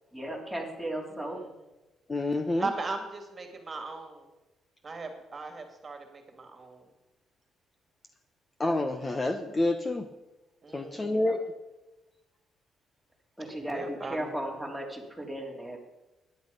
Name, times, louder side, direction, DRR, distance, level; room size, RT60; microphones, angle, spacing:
voice 1, 0.1-1.4 11.0-11.3 13.4-15.8, right 1 dB, 5° left, 0 dB, 3.4 m, -36 dB
voice 2, 1.1-1.5 2.6-4.3 4.8-6.9 10.6-11.3 13.4-14.3, right 3 dB, 35° right, 5 dB, 2.2 m, -38 dB
voice 3, 2.1-2.7 8.6-10.1 10.7-11.4, left 2 dB, 25° left, 7 dB, 1.0 m, -28 dB
14.5 x 10.5 x 5.3 m, 1.0 s
cardioid pair, 90°, 0 cm